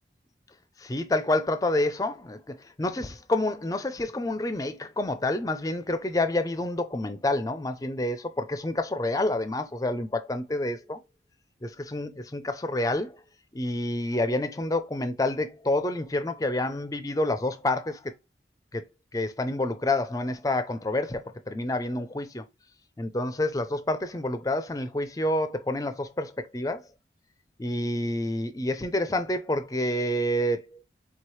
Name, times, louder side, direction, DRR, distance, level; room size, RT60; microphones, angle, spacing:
voice 1, 0.8-2.4 2.8-11.0 11.6-13.2 13.5-18.1 18.7-18.8 19.1-22.4 23.0-26.8 27.6-30.8, left 1 dB, 20° left, 0.5 m, -28 dB
4.6 x 3.3 x 3.2 m
head